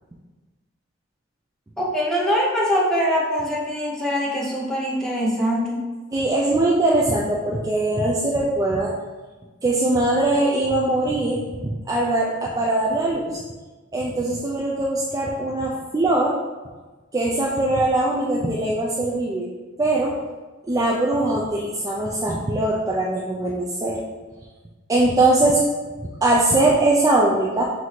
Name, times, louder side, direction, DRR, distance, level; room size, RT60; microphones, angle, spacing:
voice 1, 1.8-5.8, equal, 5° left, -4 dB, 0.7 m, -23 dB
voice 2, 6.1-8.9 9.6-13.4 13.9-16.4 17.1-19.5 19.8-20.2 20.7-24.0 24.9-25.6 26.0-27.6, right 2 dB, 15° right, -4 dB, 0.3 m, -21 dB
5.7 x 2.6 x 3.1 m, 1.3 s
head